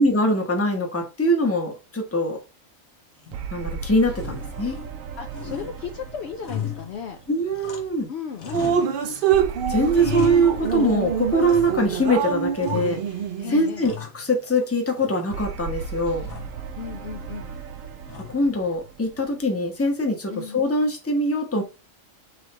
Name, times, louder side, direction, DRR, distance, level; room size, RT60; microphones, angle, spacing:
voice 1, 0.0-2.4 3.5-4.8 7.3-8.1 9.7-13.0 13.5-16.3 18.3-21.6, equal, 10° left, 0.8 m, -23 dB
sound 1, 3.2-3.7 4.1-5.0 5.3-8.1 8.3-9.3 9.7-11.0 11.5-12.1 12.6-13.3 13.6-14.7 15.0-15.7 16.2-16.7 18.1-18.6, left 8 dB, 85° left, 1.3 m, -37 dB
sound 2, 3.3-7.9 9.3-13.7 15.3-19.9, right 6 dB, 75° right, 1.0 m, -37 dB
voice 2, 5.2-7.2 8.1-8.9 13.4-13.9 16.8-17.6 20.3-20.6, left 7 dB, 65° left, 0.7 m, -35 dB
Drip, 8.5-13.7, right 7 dB, 55° right, 0.6 m, -25 dB
4.0 x 3.2 x 4.1 m
omnidirectional pair, 1.4 m